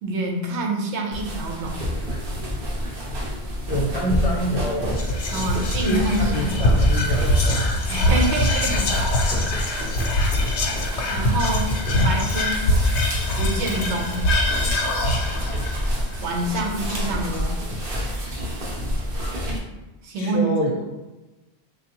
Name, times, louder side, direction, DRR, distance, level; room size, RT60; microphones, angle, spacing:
voice 1, 0.0-1.9 5.3-6.6 7.9-8.9 9.2-9.5 11.1-12.8 13.3-14.2 16.2-17.6 20.0-20.5, right 2 dB, 90° right, 1 dB, 0.9 m, -27 dB
sound 1, 1.1-19.6, equal, 60° right, 0.8 m, -29 dB
voice 2, 3.6-5.0 5.8-7.8 20.2-20.7, equal, 40° left, -2 dB, 0.6 m, -26 dB
Whispering, 4.9-17.4, left 1 dB, 80° left, 0.9 m, -23 dB
3.4 x 2.3 x 2.8 m, 1.1 s
omnidirectional pair, 1.1 m